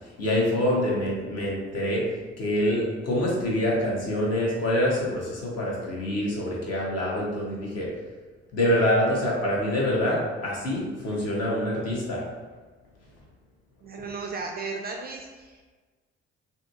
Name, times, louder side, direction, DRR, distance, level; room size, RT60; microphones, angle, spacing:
voice 1, 0.2-2.0 2.4-7.9 8.5-12.2, left 1 dB, 45° left, -4 dB, 1.2 m, -25 dB
voice 2, 13.8-15.6, right 4 dB, 30° right, 1 dB, 0.4 m, -35 dB
4.0 x 2.8 x 2.5 m, 1.4 s
figure-of-eight pair, 45°, 34 cm